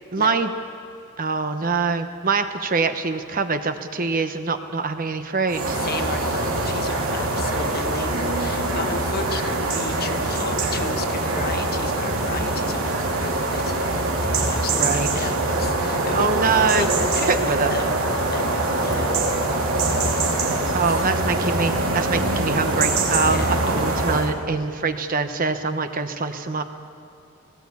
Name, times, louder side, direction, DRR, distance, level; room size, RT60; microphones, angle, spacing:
voice 1, 0.1-0.5 1.2-5.8 14.8-15.3 16.1-16.9 17.3-17.8 20.7-26.6, right 4 dB, 40° right, 8 dB, 1.0 m, -24 dB
sound 1, 5.5-24.3, right 2 dB, 75° right, 2.8 m, -23 dB
voice 2, 5.7-16.3 16.7-18.0 18.3-21.1 23.3-23.8, left 3 dB, 45° left, 6 dB, 1.3 m, -34 dB
19.0 x 18.0 x 8.5 m, 2.5 s
head